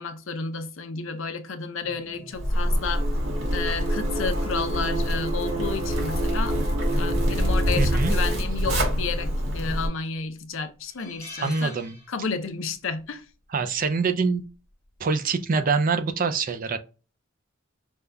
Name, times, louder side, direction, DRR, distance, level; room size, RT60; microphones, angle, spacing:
voice 1, 0.0-3.0 3.5-6.6 7.0-11.7 12.1-13.2, left 4 dB, 65° left, 0.6 m, -31 dB
sound 1, 1.8-8.4, right 2 dB, 25° right, 0.9 m, -33 dB
Zipper (clothing), 2.3-9.9, equal, 70° right, 1.4 m, -25 dB
voice 2, 7.8-8.1 11.4-12.0 13.5-14.4 15.0-16.8, right 4 dB, 40° right, 0.4 m, -25 dB
sound 2, 10.3-10.4 10.8-12.6 12.9-13.1 14.4-14.7, left 2 dB, 10° left, 1.1 m, -45 dB
5.3 x 2.3 x 3.3 m
head